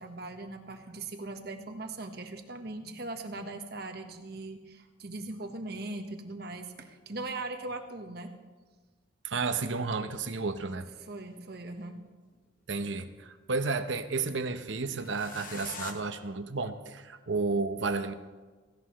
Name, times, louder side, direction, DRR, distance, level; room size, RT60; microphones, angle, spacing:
voice 1, 0.0-8.3 11.0-12.0, right 2 dB, 55° right, 4 dB, 1.3 m, -40 dB
voice 2, 9.2-10.9 12.7-18.1, right 4 dB, 75° right, 9 dB, 0.9 m, -32 dB
sound 1, 9.7-9.8 11.0-12.1 14.9-15.9, left 5 dB, 45° left, 1.3 m, -44 dB
17.0 x 16.5 x 3.2 m, 1.3 s
head